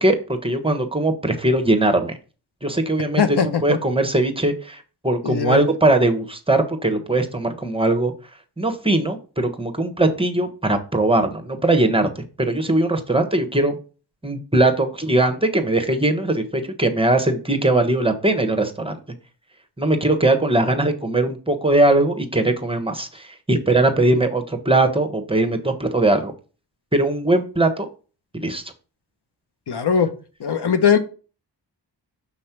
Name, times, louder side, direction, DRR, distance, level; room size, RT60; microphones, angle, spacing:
voice 1, 0.0-2.2 2.6-8.1 8.6-12.1 12.4-13.8 14.2-19.0 19.8-26.3 26.9-27.9 28.3-28.6, right 2 dB, 10° right, 6 dB, 1.2 m, -20 dB
voice 2, 3.2-3.8 5.2-5.6 29.7-30.1 30.4-31.0, left 7 dB, 60° left, 8 dB, 1.0 m, -19 dB
6.7 x 3.2 x 5.8 m, 0.35 s
cardioid pair, 50°, 45 cm